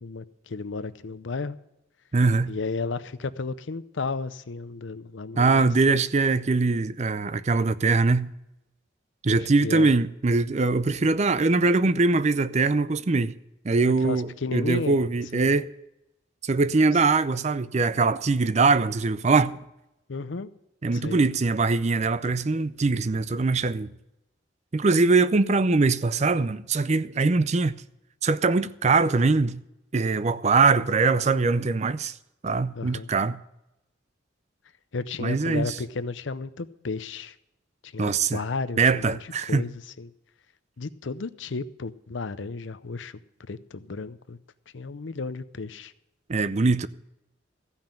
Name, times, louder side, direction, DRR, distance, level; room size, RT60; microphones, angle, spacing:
voice 1, 0.0-1.6 2.5-6.0 9.4-9.9 14.0-15.0 15.3-15.5 16.9-17.0 20.1-20.5 20.9-21.2 32.7-33.1 34.9-37.4 37.8-40.1 40.8-44.4 44.7-45.9, left 4 dB, 75° left, 0.7 m, -33 dB
voice 2, 2.1-2.5 5.4-8.3 9.2-13.3 13.6-15.7 16.4-19.6 20.8-23.9 24.7-27.8 28.2-29.6 29.9-32.1 32.4-33.4 35.2-35.7 38.0-38.4 38.8-39.6 46.3-46.9, right 3 dB, 35° right, 0.5 m, -22 dB
15.0 x 5.7 x 8.8 m
head